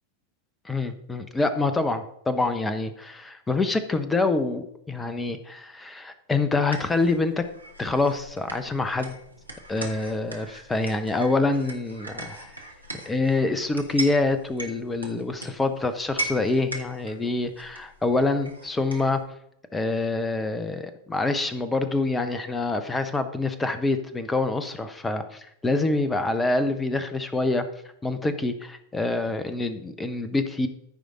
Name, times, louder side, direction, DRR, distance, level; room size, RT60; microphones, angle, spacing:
voice 1, 0.6-7.4 7.8-9.1 9.7-12.5 13.1-19.2 19.7-27.7 28.0-30.7, left 3 dB, 10° left, 11 dB, 0.9 m, -26 dB
sound 1, 6.7-19.2, right 2 dB, 85° right, 1.4 m, -39 dB
14.0 x 5.1 x 3.7 m, 0.76 s
figure-of-eight pair, 90°, 0 cm